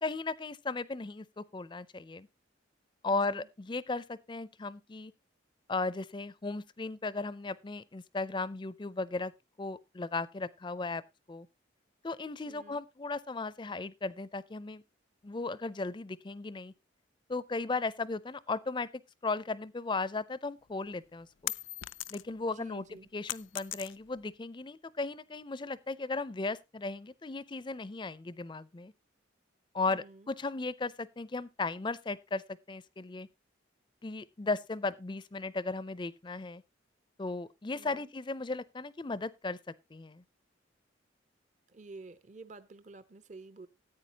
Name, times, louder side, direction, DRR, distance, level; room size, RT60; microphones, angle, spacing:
voice 1, 0.0-2.3 3.0-5.1 5.7-9.3 9.6-11.0 11.3-11.5 12.0-14.8 15.2-16.7 17.3-18.9 19.2-21.5 22.1-22.9 23.1-28.9 29.7-33.3 34.0-36.6 37.2-39.6 39.9-40.2, left 3 dB, 25° left, 0.4 m, -36 dB
voice 2, 3.1-3.5 12.5-12.8 22.5-23.1 29.9-30.3 37.7-38.1 41.7-43.7, right 3 dB, 40° right, 0.6 m, -50 dB
sound 1, 20.7-22.5 22.8-24.3, left 15 dB, 80° left, 0.4 m, -39 dB
14.5 x 8.9 x 2.9 m
head